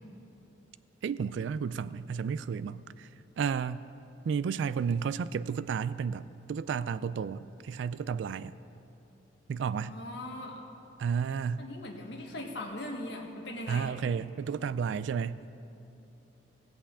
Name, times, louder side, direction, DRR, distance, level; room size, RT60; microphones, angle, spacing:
voice 1, 1.0-3.1 3.4-3.8 4.3-8.5 9.5-10.0 11.0-11.6 13.7-15.5, right 6 dB, 75° right, 16 dB, 0.3 m, -32 dB
voice 2, 9.9-10.6 11.6-13.9, left 1 dB, 70° left, 0 dB, 1.6 m, -40 dB
16.0 x 5.8 x 8.3 m, 2.7 s
head